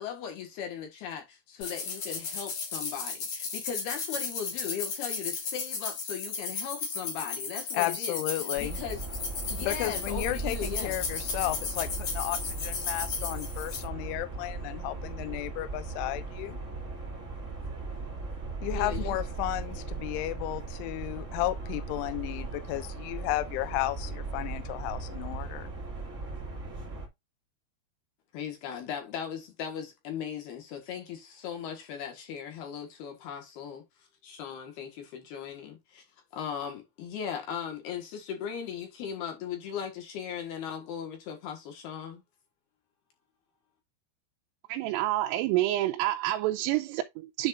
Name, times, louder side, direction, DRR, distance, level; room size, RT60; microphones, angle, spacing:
voice 1, 0.0-9.0 9.5-11.0 18.7-19.2 28.3-36.0 36.3-42.2, left 8 dB, 65° left, 3.0 m, -38 dB
sound 1, 1.6-13.8, left 5 dB, 45° left, 3.7 m, -35 dB
voice 2, 7.7-8.8 9.6-16.6 18.6-25.7, left 17 dB, 85° left, 3.0 m, -33 dB
sound 2, 8.5-27.1, right 3 dB, 60° right, 0.7 m, -38 dB
voice 3, 44.7-47.5, right 15 dB, 85° right, 3.3 m, -28 dB
10.5 x 5.2 x 2.5 m
omnidirectional pair, 5.9 m